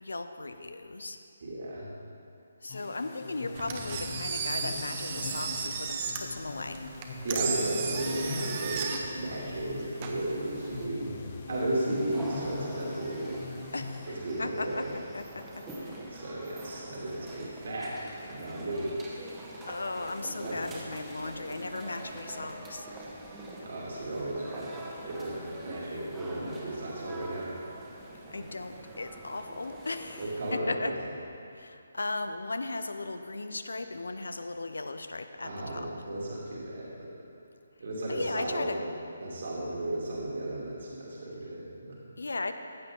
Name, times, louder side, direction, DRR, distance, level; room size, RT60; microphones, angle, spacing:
voice 1, 0.0-1.2 2.6-6.9 13.7-16.2 19.6-22.9 28.3-31.0 31.5-35.9 38.1-38.8 42.2-42.5, left 3 dB, 75° left, 9 dB, 0.7 m, -37 dB
voice 2, 1.4-1.9 7.2-11.1 11.5-13.4 14.1-14.9 16.1-19.0 20.4-20.6 23.6-24.7 25.1-27.5 30.2-31.0 35.4-37.1 37.8-38.8 39.2-42.0, right 1 dB, 60° right, -5 dB, 2.6 m, -34 dB
sound 1, 2.7-14.5, left 3 dB, 35° left, 1.1 m, -41 dB
Engine, 3.5-10.9, right 5 dB, 35° right, 1.1 m, -35 dB
sound 2, 11.5-30.6, right 1 dB, 10° right, 1.4 m, -44 dB
15.0 x 8.3 x 3.8 m, 2.6 s
figure-of-eight pair, 145°, 0 cm